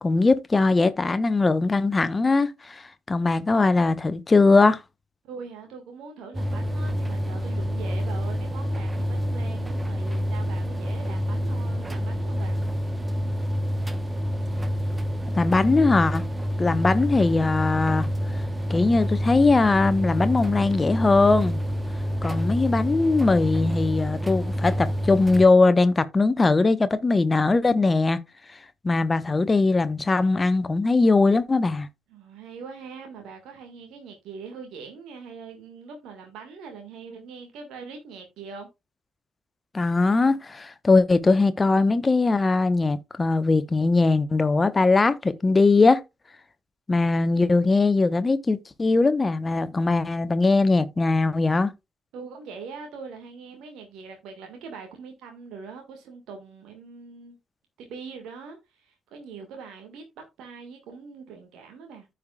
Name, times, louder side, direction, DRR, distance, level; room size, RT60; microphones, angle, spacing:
voice 1, 0.0-2.8 3.1-4.8 15.4-16.2 16.6-18.1 18.7-21.6 22.2-28.2 28.8-31.9 39.7-46.0 46.9-51.7, left 3 dB, 25° left, 1.0 m, -20 dB
voice 2, 5.2-12.6 32.1-38.7 52.1-57.4 57.8-62.1, right 5 dB, 60° right, 1.7 m, -42 dB
sound 1, 6.3-25.5, equal, 20° right, 1.0 m, -28 dB
14.5 x 5.1 x 2.3 m
figure-of-eight pair, 40°, 0 cm